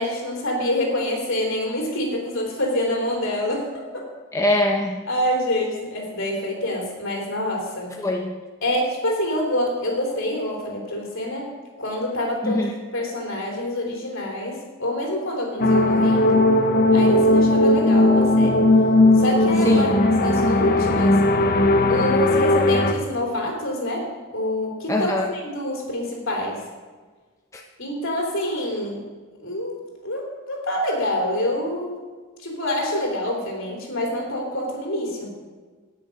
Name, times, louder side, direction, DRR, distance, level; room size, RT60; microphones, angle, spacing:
voice 1, 0.0-4.0 5.1-7.9 8.6-11.5 11.8-12.6 12.9-16.4 16.9-18.7 19.1-21.2 21.9-26.6 27.8-29.0 29.4-32.0 32.4-35.3, left 1 dB, 65° left, -1 dB, 3.5 m, -26 dB
voice 2, 4.3-5.0 8.0-8.4 12.4-12.7 19.6-19.9 24.9-25.3 27.5-27.6, left 1 dB, 15° left, 1 dB, 0.7 m, -22 dB
sound 1, 15.6-22.9, left 2 dB, 45° left, 0.9 m, -17 dB
17.0 x 6.6 x 5.3 m, 1.4 s
head